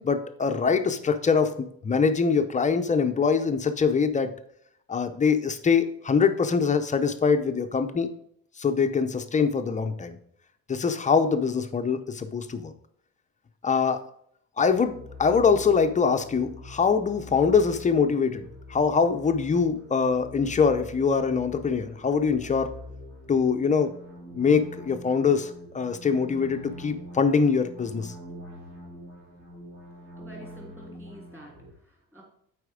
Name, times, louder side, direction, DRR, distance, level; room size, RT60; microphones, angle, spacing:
voice 1, 0.0-1.6 1.8-4.3 4.9-8.1 8.6-10.2 10.7-12.7 13.6-14.0 14.6-22.7 23.3-23.9 24.3-28.1, left 5 dB, 20° left, 8 dB, 0.6 m, -23 dB
sound 1, 14.6-31.7, left 1 dB, 40° right, 2.6 m, -44 dB
voice 2, 30.2-32.2, equal, 5° right, -1 dB, 3.1 m, -48 dB
8.1 x 4.9 x 5.0 m, 0.68 s
cardioid pair, 145°, 36 cm